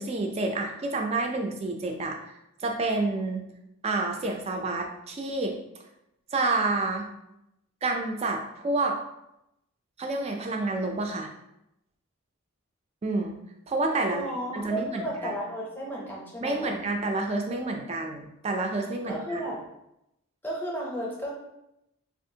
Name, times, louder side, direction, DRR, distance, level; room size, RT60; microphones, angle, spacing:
voice 1, 0.0-2.2 2.6-3.5 3.8-5.6 6.3-7.1 7.8-9.0 10.0-11.3 13.0-13.4 13.7-14.2 14.5-15.4 16.4-19.4, right 2 dB, 30° right, 3 dB, 0.3 m, -29 dB
voice 2, 14.1-16.8 19.1-19.6 20.4-21.3, equal, 10° left, -3 dB, 0.6 m, -33 dB
3.4 x 2.4 x 2.7 m, 0.84 s
head